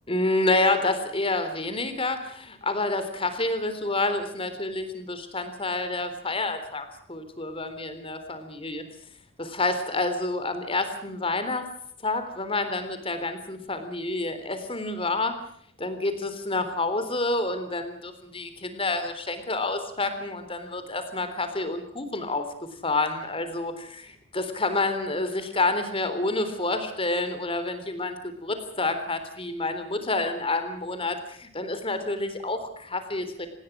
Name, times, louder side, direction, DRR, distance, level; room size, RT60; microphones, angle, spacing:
voice 1, 0.1-8.8 9.4-11.7 12.0-15.3 15.8-22.4 22.8-33.5, left 2 dB, 25° left, 9 dB, 3.7 m, -28 dB
27.0 x 20.0 x 6.2 m, 0.66 s
head